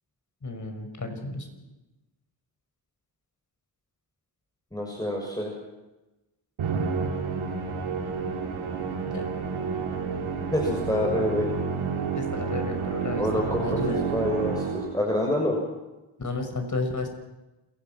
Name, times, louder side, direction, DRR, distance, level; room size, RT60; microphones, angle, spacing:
voice 1, 0.4-1.5 9.1-9.2 12.2-14.1 16.2-17.1, left 3 dB, 35° left, 6 dB, 6.1 m, -32 dB
voice 2, 4.7-5.5 10.5-11.5 13.2-15.6, left 1 dB, 10° left, -1 dB, 7.0 m, -27 dB
Musical instrument, 6.6-15.1, right 5 dB, 75° right, 3.9 m, -30 dB
28.0 x 16.5 x 6.2 m, 1.0 s
cardioid pair, 70°, 49 cm